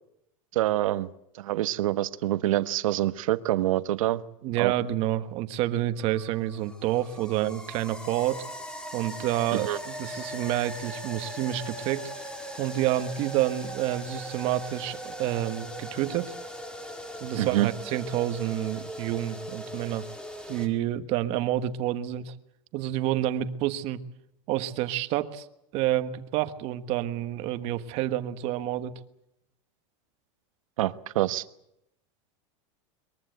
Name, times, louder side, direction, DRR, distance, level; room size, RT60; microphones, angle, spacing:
voice 1, 0.5-1.1 1.3-4.2 4.6-4.7 9.5-9.8 17.4-17.7 30.8-31.4, right 15 dB, 80° right, 12 dB, 1.2 m, -26 dB
voice 2, 4.4-8.4 8.9-12.1 12.6-16.3 17.2-20.0 20.5-22.3 22.7-24.0 24.5-25.4 25.7-28.9, right 13 dB, 35° right, 11 dB, 1.3 m, -29 dB
sound 1, 6.0-20.7, equal, 5° left, 1.9 m, -40 dB
22.5 x 22.0 x 7.9 m, 0.80 s
supercardioid pair, 170°, 17 cm